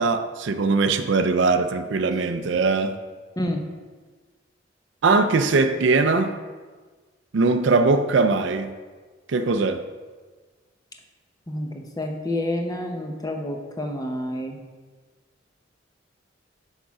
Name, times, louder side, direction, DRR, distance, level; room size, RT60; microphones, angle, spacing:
voice 1, 0.0-3.0 5.0-6.3 7.3-8.7 9.3-9.8, right 3 dB, 70° right, 9 dB, 0.4 m, -21 dB
voice 2, 3.4-3.7 11.5-14.6, left 1 dB, 20° left, 3 dB, 0.7 m, -29 dB
6.3 x 5.8 x 4.8 m, 1.4 s
head